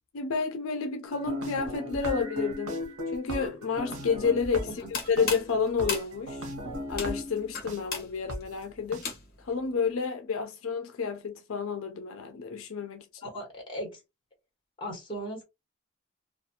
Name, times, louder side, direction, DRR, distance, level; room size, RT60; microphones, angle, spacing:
voice 1, 0.1-2.8 3.1-6.5 6.9-9.0 9.4-13.1, left 5 dB, 75° left, 0.4 m, -30 dB
sound 1, 1.1-7.8 8.3-8.4 8.9-9.0, left 1 dB, 85° right, 0.9 m, -36 dB
sound 2, 4.7-9.5, left 4 dB, 45° left, 0.9 m, -37 dB
voice 2, 13.2-14.0 14.8-15.4, equal, 25° left, 1.3 m, -37 dB
2.5 x 2.3 x 2.7 m
head